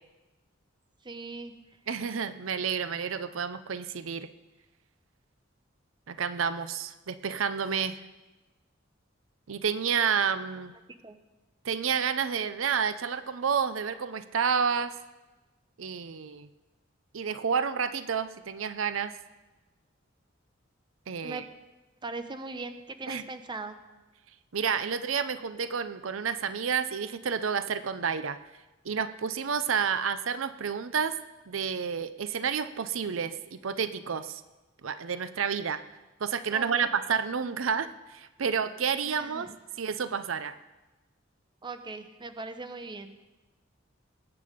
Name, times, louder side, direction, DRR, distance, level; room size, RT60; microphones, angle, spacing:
voice 1, 1.0-1.5 11.0-11.2 21.2-21.4 22.0-23.7 36.5-36.9 39.1-39.5 41.6-43.1, right 3 dB, 25° right, 9 dB, 0.8 m, -39 dB
voice 2, 1.9-4.3 6.1-8.0 9.5-10.7 11.6-14.9 15.8-16.5 17.1-19.1 21.1-21.4 23.1-23.2 24.5-28.4 28.8-31.2 31.5-34.4 34.8-35.8 36.2-39.5 39.8-40.5, right 6 dB, 85° right, 12 dB, 0.6 m, -30 dB
20.0 x 8.7 x 5.1 m, 1.1 s
head